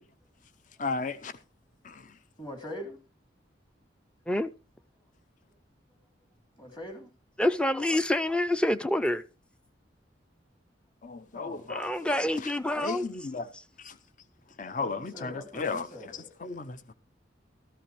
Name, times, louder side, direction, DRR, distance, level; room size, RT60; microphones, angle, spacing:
voice 1, 0.8-1.3 1.8-2.1 11.0-13.5 13.8-14.0 14.6-16.9, left 4 dB, 40° left, 0.7 m, -35 dB
voice 2, 2.4-3.0 6.6-7.1 11.3-11.7 14.8-16.3, left 1 dB, 25° left, 2.8 m, -42 dB
voice 3, 7.4-9.2 11.7-13.1, left 1 dB, 5° left, 0.5 m, -27 dB
14.0 x 13.0 x 3.2 m
head